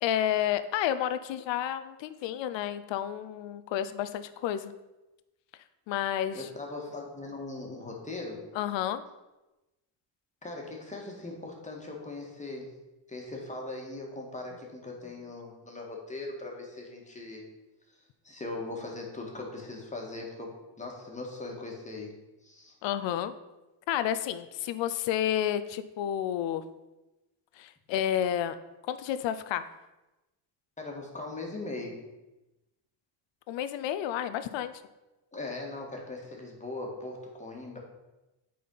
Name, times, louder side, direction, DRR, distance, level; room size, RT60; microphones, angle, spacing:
voice 1, 0.0-4.7 5.9-6.5 8.5-9.0 22.8-23.3 23.9-26.6 27.6-28.6 28.9-29.7 33.5-34.8, left 10 dB, 80° left, 12 dB, 0.7 m, -30 dB
voice 2, 6.3-8.4 10.4-12.7 13.1-17.5 18.2-22.7 30.8-32.0 35.3-37.8, left 2 dB, 15° left, 0 dB, 1.9 m, -40 dB
8.5 x 4.4 x 5.5 m, 1.0 s
cardioid pair, 110°, 43 cm